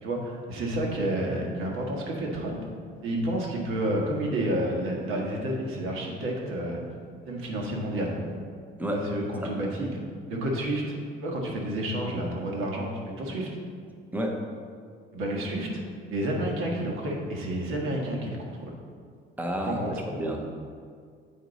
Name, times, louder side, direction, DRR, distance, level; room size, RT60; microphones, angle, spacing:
voice 1, 0.0-2.6 3.0-6.9 7.2-8.1 8.9-9.9 10.3-11.0 11.2-13.5 15.1-15.7 16.1-18.4 18.6-18.8 19.6-19.9, right 1 dB, 75° right, -1 dB, 1.5 m, -30 dB
voice 2, 14.1-14.4 19.4-20.4, equal, 10° right, 1 dB, 0.8 m, -30 dB
8.7 x 4.4 x 4.0 m, 2.1 s
cardioid pair, 145°, 21 cm